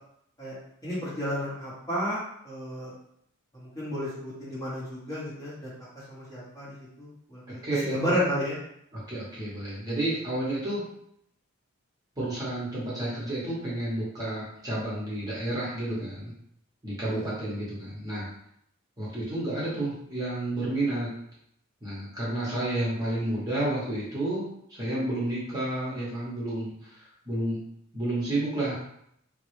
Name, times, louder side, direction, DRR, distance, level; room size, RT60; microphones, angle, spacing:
voice 1, 0.8-2.9 3.5-5.7 6.1-7.6 7.9-8.6 17.0-17.3, equal, 15° left, -9 dB, 0.9 m, -32 dB
voice 2, 7.6-8.2 8.9-10.9 12.2-16.3 16.8-18.3 19.0-21.1 21.8-27.6 27.9-28.7, right 1 dB, 20° right, -8 dB, 0.9 m, -31 dB
3.6 x 2.0 x 3.1 m, 0.73 s
head